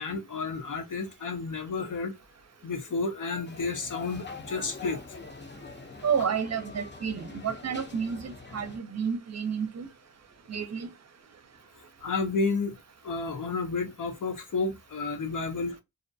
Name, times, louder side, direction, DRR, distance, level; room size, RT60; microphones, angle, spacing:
voice 1, 0.0-2.1 2.6-5.2 5.6-5.7 12.0-12.8 13.0-15.8, left 4 dB, 75° left, 0.6 m, -31 dB
sound 1, 3.4-8.8, left 4 dB, 35° left, 0.6 m, -44 dB
voice 2, 6.0-9.9 10.5-10.9, right 7 dB, 55° right, 0.6 m, -30 dB
2.6 x 2.1 x 2.6 m
cardioid pair, 45°, 31 cm